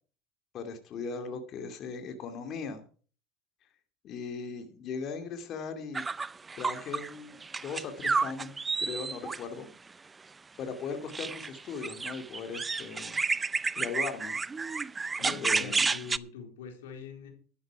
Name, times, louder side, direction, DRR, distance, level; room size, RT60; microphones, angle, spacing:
voice 1, 0.5-2.8 4.0-6.0 6.6-8.5 8.8-9.7 10.6-13.2 13.8-14.4 15.2-15.9, left 5 dB, 50° left, 7 dB, 2.6 m, -38 dB
sound 1, 5.9-7.1 7.4-9.4 11.1-16.2, right 4 dB, 20° right, 0.5 m, -31 dB
voice 2, 15.2-17.3, left 6 dB, 90° left, 4 dB, 4.0 m, -44 dB
12.5 x 10.5 x 4.8 m, 0.41 s
supercardioid pair, 100°, 0 cm